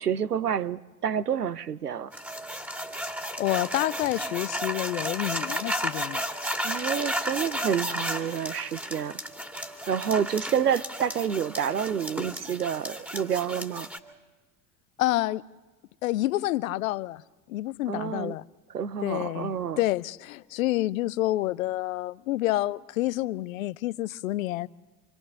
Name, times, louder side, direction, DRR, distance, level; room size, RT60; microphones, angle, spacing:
voice 1, 0.0-2.1 6.6-9.2 9.9-13.9 17.9-18.4 18.7-19.8, right 8 dB, 85° right, 0.8 m, -28 dB
sound 1, 2.1-14.0, equal, 5° right, 2.1 m, -33 dB
voice 2, 3.4-6.2 15.0-15.4 16.0-17.2 17.5-18.4 19.0-24.7, left 16 dB, 60° left, 0.8 m, -28 dB
26.5 x 22.5 x 6.7 m
figure-of-eight pair, 75°, 46 cm